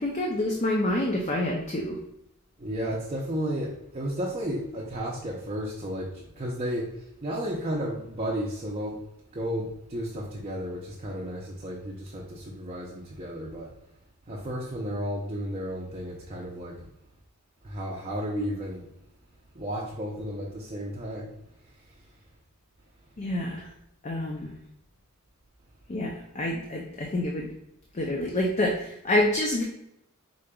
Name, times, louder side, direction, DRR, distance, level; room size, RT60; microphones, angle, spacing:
voice 1, 0.0-2.0 23.2-23.7 24.0-24.5 25.9-27.5 27.9-29.6, left 1 dB, 30° left, 0 dB, 0.5 m, -27 dB
voice 2, 2.6-6.9 7.2-9.0 9.3-13.7 14.3-16.9 17.6-18.9 19.5-21.3, equal, 30° right, -4 dB, 0.6 m, -33 dB
5.1 x 3.7 x 2.3 m, 0.81 s
head